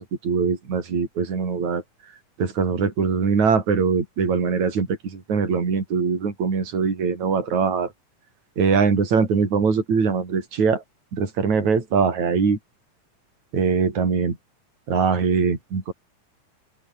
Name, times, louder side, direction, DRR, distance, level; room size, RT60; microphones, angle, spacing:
voice 1, 0.0-1.8 2.4-7.9 8.6-10.8 11.1-12.6 13.5-14.3 14.9-15.9, right 5 dB, 55° right, 6.0 m, -22 dB
open air
omnidirectional pair, 3.9 m